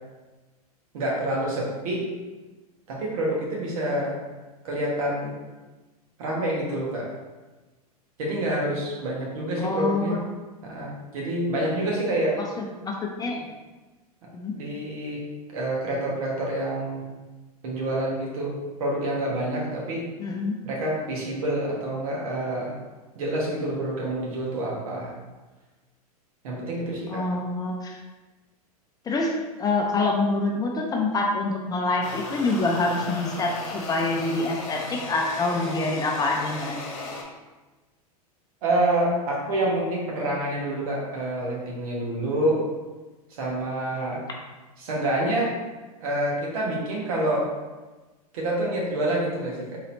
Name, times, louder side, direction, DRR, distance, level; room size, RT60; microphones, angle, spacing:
voice 1, 0.9-2.1 2.9-4.2 4.6-5.4 6.2-7.1 8.2-10.2 10.6-12.4 14.5-15.2 15.5-17.1 17.6-20.1 20.6-22.8 23.1-25.1 26.4-27.2 38.6-42.7 43.3-44.2 44.8-45.5 46.0-47.5 48.3-49.8, right 1 dB, 65° right, -3 dB, 1.4 m, -27 dB
voice 2, 9.6-10.2 12.4-13.4 14.3-14.6 20.2-20.6 27.1-28.0 29.1-36.8, left 2 dB, 20° left, 1 dB, 0.5 m, -26 dB
sound 1, 32.0-37.2, left 3 dB, 55° left, 1.0 m, -36 dB
4.1 x 3.9 x 2.7 m, 1.2 s
hypercardioid pair, 95°, 20 cm